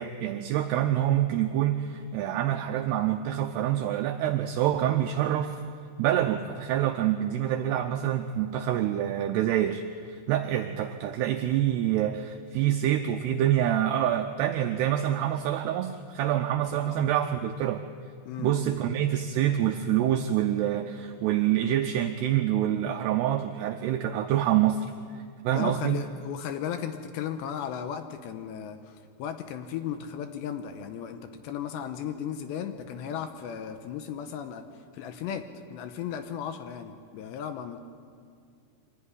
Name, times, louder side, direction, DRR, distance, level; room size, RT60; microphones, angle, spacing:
voice 1, 0.0-5.6 6.0-17.9 18.4-24.9 25.4-26.0, right 11 dB, 85° right, 6 dB, 2.3 m, -26 dB
voice 2, 18.3-18.8 25.5-34.7 34.9-37.8, left 8 dB, 75° left, 8 dB, 2.8 m, -36 dB
24.0 x 15.0 x 9.7 m, 2.3 s
omnidirectional pair, 5.6 m